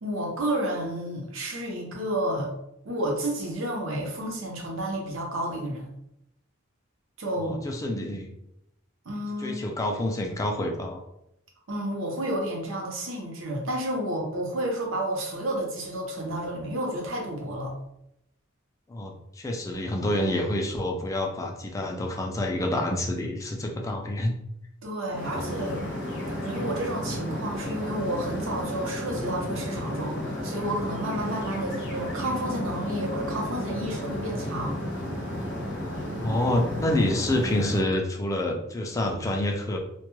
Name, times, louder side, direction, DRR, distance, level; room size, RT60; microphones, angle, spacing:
voice 1, 0.0-2.5 2.8-5.9 7.2-7.6 9.1-9.6 11.7-17.7 24.8-25.8 26.4-34.7, right 1 dB, 70° right, 0 dB, 0.7 m, -31 dB
voice 2, 7.4-8.3 9.4-11.0 18.9-24.3 36.2-39.8, left 1 dB, 15° left, 2 dB, 0.3 m, -28 dB
sound 1, 25.1-37.8, equal, 60° left, 0.7 m, -33 dB
2.2 x 2.2 x 3.0 m, 0.80 s
head